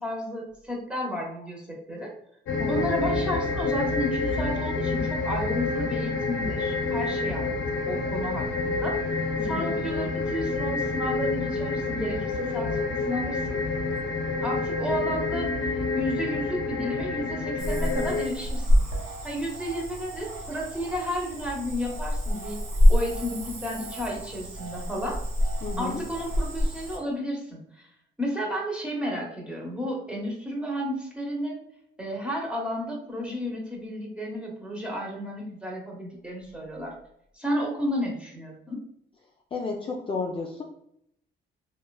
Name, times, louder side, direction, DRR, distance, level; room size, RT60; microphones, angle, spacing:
voice 1, 0.0-2.1 2.7-9.0 9.4-13.6 14.4-18.8 19.2-22.6 22.9-25.2 25.8-27.9 28.2-31.6 32.0-36.9 37.4-38.8, equal, 5° right, -2 dB, 0.9 m, -32 dB
sound 1, 2.5-18.3, left 3 dB, 80° left, 0.5 m, -28 dB
voice 2, 9.4-9.7 25.6-26.0 39.5-40.6, left 4 dB, 25° left, -1 dB, 0.4 m, -32 dB
Cricket / Frog, 17.6-27.0, equal, 90° right, 0.8 m, -27 dB
3.0 x 2.2 x 2.3 m, 0.72 s
cardioid pair, 90°, 20 cm